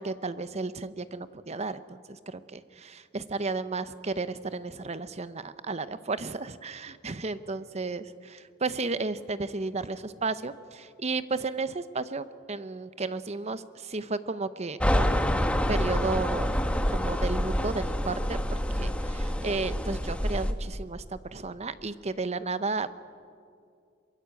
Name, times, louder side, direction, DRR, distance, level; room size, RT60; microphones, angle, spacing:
voice 1, 0.0-16.5 16.9-23.0, right 3 dB, 35° right, 13 dB, 0.8 m, -33 dB
sound 1, 14.8-20.5, equal, 5° left, 1.1 m, -27 dB
23.0 x 22.0 x 8.4 m, 2.3 s
head